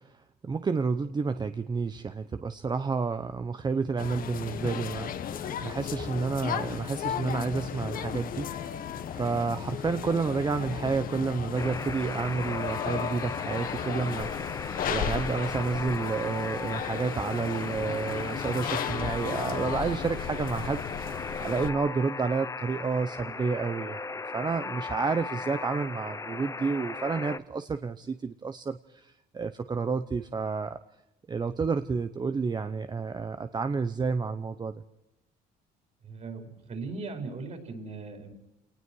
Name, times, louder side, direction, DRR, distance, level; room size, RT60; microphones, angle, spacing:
voice 1, 0.0-8.7 9.1-24.0 24.3-30.8 31.3-34.8, right 4 dB, 25° right, 10 dB, 0.8 m, -30 dB
sound 1, 4.0-21.7, left 8 dB, 55° left, 1.4 m, -35 dB
Alarm, 11.6-27.4, left 4 dB, 20° left, 0.8 m, -37 dB
voice 2, 36.0-38.3, right 3 dB, 40° right, 4 dB, 5.0 m, -38 dB
29.0 x 19.0 x 4.7 m, 0.92 s
cardioid pair, 110°, 17 cm